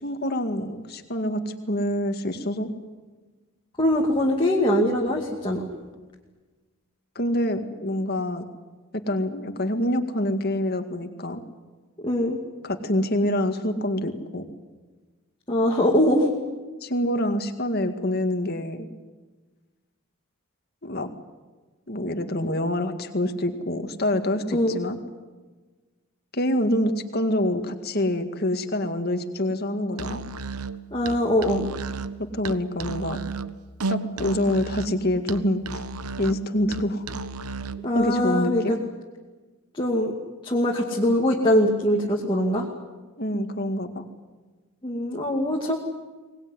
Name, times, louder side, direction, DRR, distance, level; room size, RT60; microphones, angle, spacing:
voice 1, 0.0-2.7 7.2-8.4 8.9-11.4 12.6-14.5 16.8-18.9 20.8-21.1 21.9-25.0 26.3-30.2 32.3-33.2 33.9-35.8 36.2-37.0 37.9-38.8 43.2-44.0, left 1 dB, 45° left, 7 dB, 2.1 m, -26 dB
voice 2, 3.8-5.6 12.0-12.4 15.5-16.3 24.5-24.8 30.9-31.7 37.8-38.8 39.7-40.1 40.4-42.7 44.8-45.8, left 1 dB, 20° left, -2 dB, 2.4 m, -22 dB
Musical instrument, 29.9-37.9, right 3 dB, 90° right, 1.1 m, -34 dB
24.0 x 20.0 x 9.8 m, 1.3 s
head